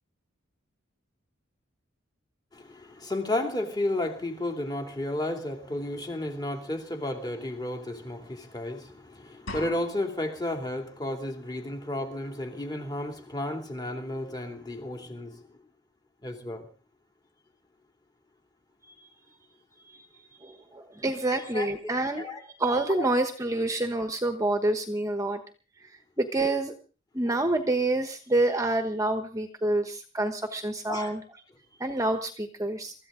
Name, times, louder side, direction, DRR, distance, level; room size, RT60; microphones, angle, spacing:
voice 1, 2.5-15.4 16.2-16.7 21.3-21.9 22.2-22.4 22.9-23.0 30.9-31.1, left 1 dB, 20° left, 2.8 m, -33 dB
sound 1, 9.5-10.5, left 2 dB, 70° left, 5.3 m, -40 dB
voice 2, 20.4-22.3 22.6-25.4 26.2-26.7 27.1-31.2 31.8-32.9, right 2 dB, 15° right, 1.2 m, -27 dB
23.5 x 14.0 x 3.8 m
head